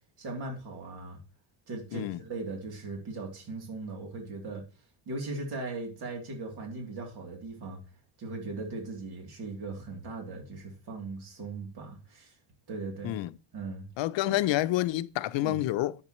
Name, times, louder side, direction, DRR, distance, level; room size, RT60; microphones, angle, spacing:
voice 1, 0.2-1.2 1.7-4.6 5.1-7.8 8.2-12.3 12.7-13.2 13.5-13.9 14.2-14.4 15.4-15.6, right 3 dB, 55° right, 3.1 m, -38 dB
voice 2, 14.0-16.0, left 15 dB, 75° left, 0.7 m, -28 dB
10.5 x 8.0 x 3.1 m
cardioid pair, 160°, 45 cm